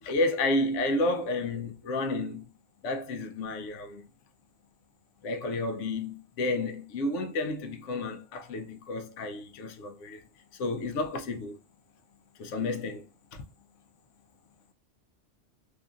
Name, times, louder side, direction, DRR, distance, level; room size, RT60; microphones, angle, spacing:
voice 1, 0.0-2.5 2.8-4.1 5.2-10.2 10.6-11.6 12.4-13.1 13.3-13.4, left 2 dB, 80° left, 0.9 m, -31 dB
2.8 x 2.4 x 2.3 m
omnidirectional pair, 1.3 m